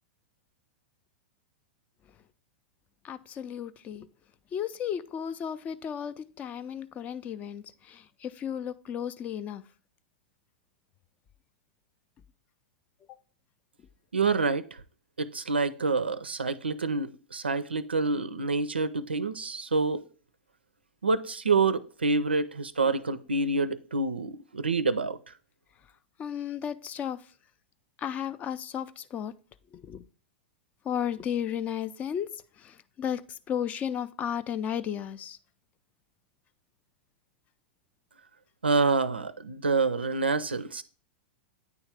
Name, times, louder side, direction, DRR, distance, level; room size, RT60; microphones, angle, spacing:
voice 1, 3.0-4.1 4.5-9.6 26.2-27.2 28.0-29.3 29.7-30.0 30.9-32.3 32.6-35.4, left 9 dB, 25° left, 0.3 m, -34 dB
voice 2, 14.1-14.6 15.2-20.0 21.0-25.2 38.6-40.8, right 3 dB, 85° right, 0.4 m, -27 dB
9.2 x 3.1 x 3.4 m
figure-of-eight pair, 100°, 6 cm